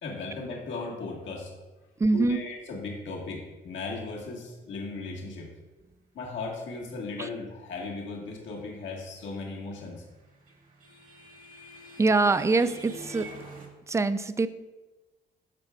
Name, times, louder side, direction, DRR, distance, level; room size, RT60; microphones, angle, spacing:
voice 1, 0.0-1.5 2.1-5.5 6.1-10.0, left 3 dB, 70° left, -2 dB, 1.6 m, -37 dB
voice 2, 2.0-2.4 7.2-7.3 12.0-13.3 13.9-14.5, right 3 dB, 15° right, 13 dB, 0.3 m, -24 dB
sound 1, 9.8-13.7, right 1 dB, 45° right, 1.6 m, -45 dB
13.5 x 4.7 x 2.4 m, 1.1 s
cardioid pair, 90°, 20 cm